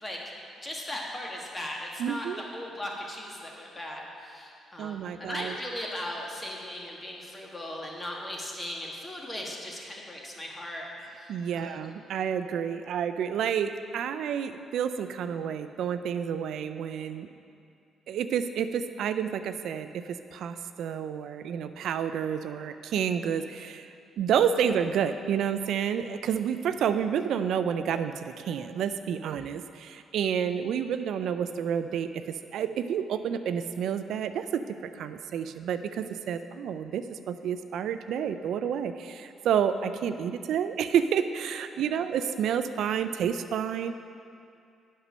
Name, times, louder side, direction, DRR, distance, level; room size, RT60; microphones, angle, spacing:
voice 1, 0.6-11.9 41.7-42.0, left 1 dB, 20° left, -1 dB, 1.6 m, -38 dB
voice 2, 2.0-2.4 4.8-5.5 11.3-17.3 18.1-32.2 32.5-34.6 34.9-43.9, right 8 dB, 75° right, 10 dB, 0.3 m, -29 dB
8.2 x 5.5 x 6.1 m, 2.5 s
cardioid pair, 90°, 0 cm